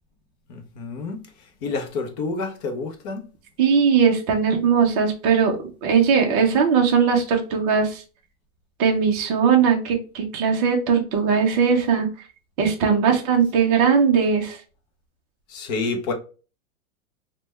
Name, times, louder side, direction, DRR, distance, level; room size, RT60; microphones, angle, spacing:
voice 1, 0.5-1.2 1.6-3.2 15.5-16.1, left 3 dB, 30° left, 0.5 m, -28 dB
voice 2, 3.6-8.0 8.8-12.1 12.6-14.6, right 6 dB, 30° right, 0.5 m, -19 dB
3.2 x 2.2 x 3.1 m
hypercardioid pair, 150°, 42 cm